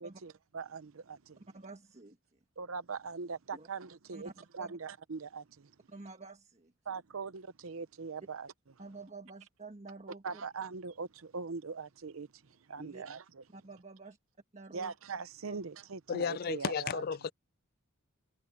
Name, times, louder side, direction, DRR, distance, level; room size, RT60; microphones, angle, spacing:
voice 1, 0.0-1.4 2.6-5.7 6.9-8.5 10.2-13.4 14.7-17.0, right 5 dB, 75° right, 0.7 m, -41 dB
voice 2, 1.5-2.4 3.5-3.7 4.1-4.3 4.6-4.7 5.9-6.7 8.8-10.4 12.8-13.0 13.5-14.2 14.5-14.9 15.5-15.6, right 3 dB, 30° right, 1.4 m, -49 dB
voice 3, 16.1-17.3, left 6 dB, 45° left, 0.4 m, -33 dB
head